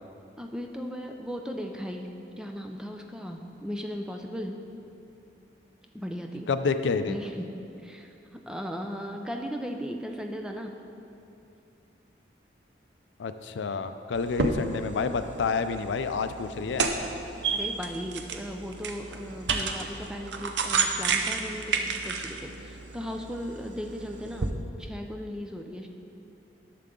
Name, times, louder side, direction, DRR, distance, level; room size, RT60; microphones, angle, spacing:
voice 1, 0.4-2.1 2.4-4.6 5.9-6.5 7.0-7.5 7.8-8.1 8.5-10.8 17.5-25.9, equal, 5° right, 3 dB, 0.4 m, -37 dB
voice 2, 6.5-7.1 13.2-16.9, left 5 dB, 85° left, 10 dB, 0.4 m, -29 dB
sound 1, 14.1-24.5, right 4 dB, 75° right, 0.6 m, -31 dB
10.5 x 6.7 x 3.7 m, 2.7 s
head